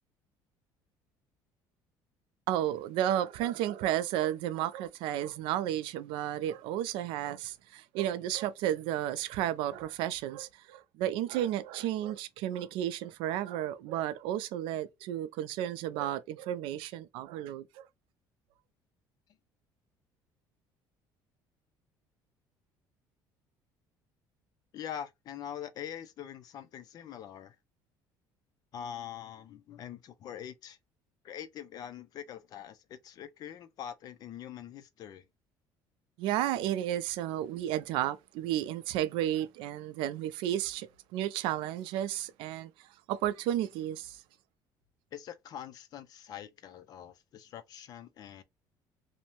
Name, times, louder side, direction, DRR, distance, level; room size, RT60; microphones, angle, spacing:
voice 1, 2.5-17.9 36.2-42.7 43.1-44.2, right 12 dB, 80° right, 0.4 m, -32 dB
voice 2, 24.7-27.6 28.7-30.8 31.2-35.2 45.1-48.4, left 9 dB, 50° left, 0.5 m, -44 dB
2.6 x 2.1 x 2.8 m
cardioid pair, 130°, 9 cm